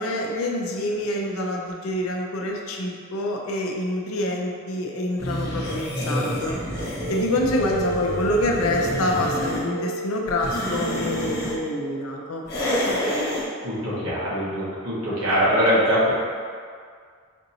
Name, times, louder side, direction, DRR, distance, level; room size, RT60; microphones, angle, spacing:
voice 1, 0.0-12.4, left 1 dB, 75° left, 0 dB, 0.5 m, -26 dB
sound 1, 5.2-9.6 10.3-11.6 12.5-13.5, equal, 50° left, 1.1 m, -28 dB
Telephone, 7.0-7.1 7.6-8.1 8.6-9.2 9.6-10.2 10.7-11.2 11.7-12.0 13.0-13.2, right 1 dB, 65° right, 1.5 m, -32 dB
voice 2, 13.6-16.1, equal, 80° right, -9 dB, 1.3 m, -22 dB
5.1 x 2.7 x 2.7 m, 2.1 s
head